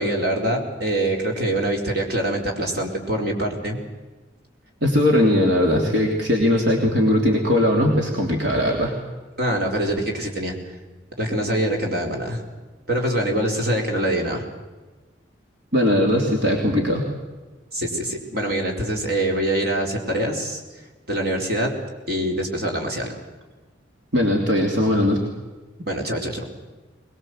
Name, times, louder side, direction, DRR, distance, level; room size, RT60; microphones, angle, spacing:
voice 1, 0.0-3.8 9.4-10.6 11.2-12.4 12.9-14.5 17.7-20.6 21.1-21.7 22.1-23.2 25.9-26.4, right 1 dB, 55° right, 1 dB, 4.4 m, -24 dB
voice 2, 4.8-9.0 15.7-17.0 24.1-25.2, left 1 dB, 70° right, 0 dB, 3.2 m, -19 dB
22.0 x 21.0 x 7.9 m, 1.2 s
head